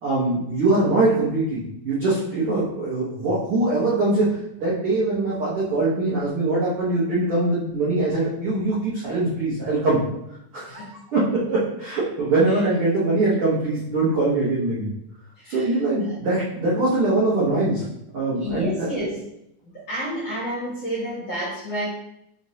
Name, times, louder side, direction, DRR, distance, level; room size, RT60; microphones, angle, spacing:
voice 1, 0.0-4.3 4.6-10.0 10.5-14.9 15.5-17.8 18.1-18.9, right 2 dB, 75° right, -8 dB, 1.2 m, -22 dB
voice 2, 15.4-16.1 18.4-19.2 19.9-21.8, equal, 55° left, -9 dB, 1.5 m, -29 dB
4.9 x 3.1 x 2.8 m, 0.81 s
omnidirectional pair, 3.7 m